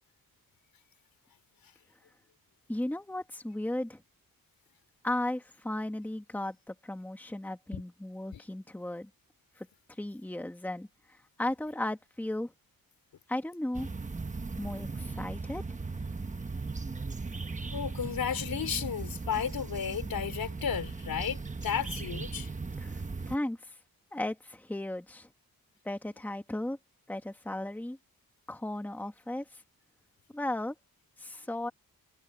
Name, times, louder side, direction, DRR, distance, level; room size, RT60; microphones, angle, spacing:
voice 1, 2.7-4.0 5.0-9.1 9.6-9.7 10.0-12.5 13.3-13.9 14.6-15.6 22.8-23.7 24.1-25.3 25.8-26.8 27.1-28.0 28.5-29.6 30.3-30.7 31.2-31.7, left 1 dB, 5° left, 1.5 m, -35 dB
sound 1, 13.7-23.4, right 4 dB, 20° right, 1.2 m, -38 dB
voice 2, 17.7-22.5, left 8 dB, 70° left, 3.5 m, -33 dB
wide cardioid pair, 175°, 36 cm